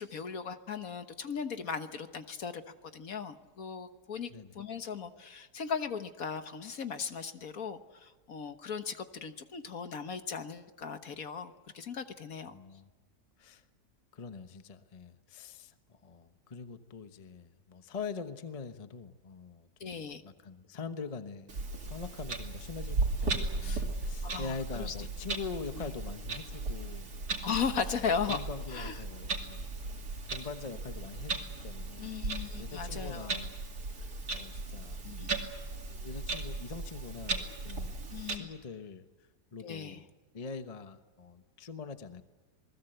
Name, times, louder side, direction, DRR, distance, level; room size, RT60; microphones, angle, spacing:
voice 1, 0.0-12.6 19.8-20.2 23.6-23.9 24.2-24.9 25.7-25.9 27.4-28.4 28.7-29.0 32.0-33.3 35.0-35.3 38.1-38.5 39.6-40.0, left 6 dB, 60° left, 9 dB, 1.7 m, -37 dB
voice 2, 12.5-12.9 13.4-13.6 14.1-21.5 21.8-27.1 27.9-28.0 28.2-29.7 30.3-32.1 32.4-33.5 34.3-35.0 35.9-37.9 38.3-39.1 39.5-40.0 40.3-42.2, left 5 dB, 25° left, 9 dB, 1.0 m, -43 dB
Clock, 21.5-38.4, right 3 dB, 70° right, 3.2 m, -37 dB
28.0 x 20.0 x 8.0 m, 1.3 s
omnidirectional pair, 1.8 m